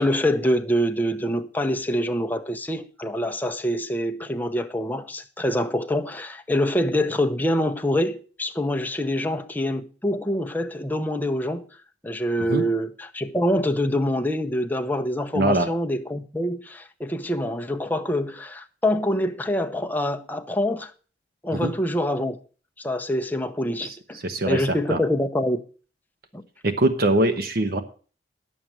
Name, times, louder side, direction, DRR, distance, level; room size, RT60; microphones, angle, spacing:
voice 1, 0.0-11.7 12.0-20.9 21.4-22.4 22.8-25.6 26.3-26.4, left 1 dB, 10° left, 0.8 m, -25 dB
voice 2, 15.3-15.7 21.5-21.7 23.8-24.6 24.9-25.0 26.6-27.8, right 1 dB, 60° right, 1.0 m, -22 dB
10.5 x 7.3 x 6.3 m
head